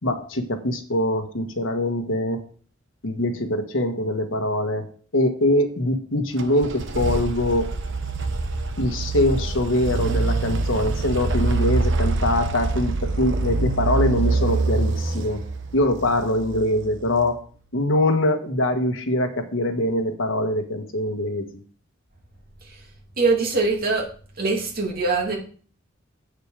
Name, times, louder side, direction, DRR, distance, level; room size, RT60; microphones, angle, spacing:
voice 1, 0.0-2.4 3.0-4.9 5.1-7.7 8.8-15.4 15.7-17.4 17.7-21.6, left 1 dB, 80° left, 6 dB, 1.4 m, -23 dB
sound 1, 6.4-17.2, right 3 dB, 65° right, 1.0 m, -25 dB
voice 2, 23.2-24.1 24.4-25.4, right 3 dB, 50° right, 0 dB, 2.4 m, -23 dB
8.0 x 6.6 x 4.9 m, 0.43 s
head